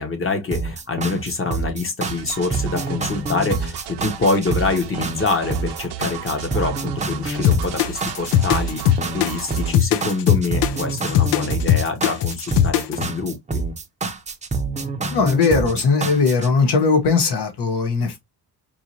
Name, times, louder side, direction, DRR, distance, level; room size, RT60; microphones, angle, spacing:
voice 1, 0.0-13.6, left 3 dB, 30° left, 1.0 m, -25 dB
sound 1, 0.5-16.5, right 3 dB, 15° right, 0.6 m, -27 dB
sound 2, 2.0-9.7, right 10 dB, 70° right, 0.7 m, -35 dB
sound 3, 7.4-13.1, left 11 dB, 85° left, 0.6 m, -19 dB
voice 2, 15.1-18.2, left 4 dB, 70° left, 1.3 m, -19 dB
4.7 x 2.8 x 2.8 m
cardioid pair, 130°, 41 cm